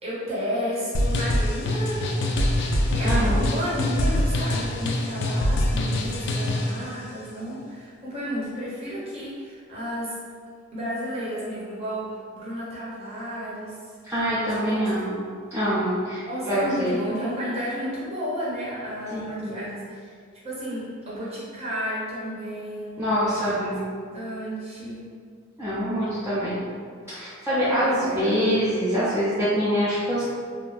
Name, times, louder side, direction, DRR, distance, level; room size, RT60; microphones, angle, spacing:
voice 1, 0.0-2.2 2.9-10.2 10.7-13.9 14.5-14.9 16.2-20.2 20.4-23.7 24.1-25.0 27.8-28.3, equal, 30° right, -8 dB, 0.8 m, -32 dB
sound 1, 0.9-6.8, left 1 dB, 55° left, 0.3 m, -24 dB
voice 2, 3.0-3.5 14.1-15.2 15.5-17.0 19.1-19.7 23.0-23.9 25.6-26.6 27.1-30.2, equal, 15° right, -13 dB, 0.4 m, -25 dB
2.4 x 2.1 x 3.2 m, 2.1 s
head